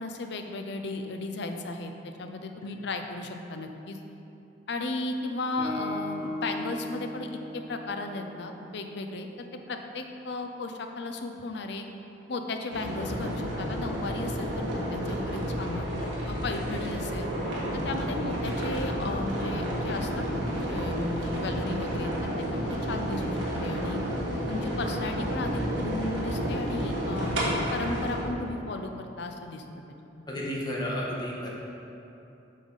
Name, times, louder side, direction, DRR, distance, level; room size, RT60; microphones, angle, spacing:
voice 1, 0.0-4.0 4.7-11.9 12.3-17.3 17.8-22.1 22.5-24.0 24.5-29.6 30.1-30.2, left 2 dB, 65° left, 5 dB, 0.6 m, -35 dB
Guitar, 5.6-9.2, left 1 dB, 55° right, 1.5 m, -38 dB
sound 1, 12.7-28.2, equal, 90° right, 1.7 m, -31 dB
voice 2, 30.3-31.5, equal, 25° left, -5 dB, 1.3 m, -32 dB
8.3 x 5.4 x 4.0 m, 2.9 s
head